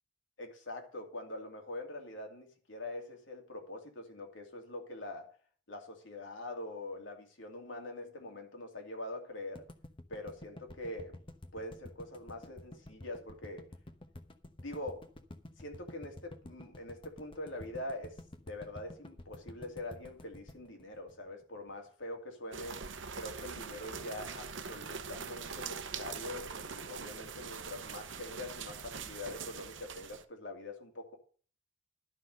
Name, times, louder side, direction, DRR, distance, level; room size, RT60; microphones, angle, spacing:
voice 1, 0.4-5.4 5.7-9.7 10.1-11.2 11.5-13.7 14.6-15.1 15.6-22.8 23.1-31.2, left 1 dB, 85° left, 3 dB, 2.8 m, -44 dB
sound 1, 9.6-21.7, left 1 dB, 30° left, 0.9 m, -50 dB
sound 2, 22.5-30.2, right 6 dB, 85° right, 0.9 m, -43 dB
11.5 x 5.8 x 6.6 m, 0.42 s
head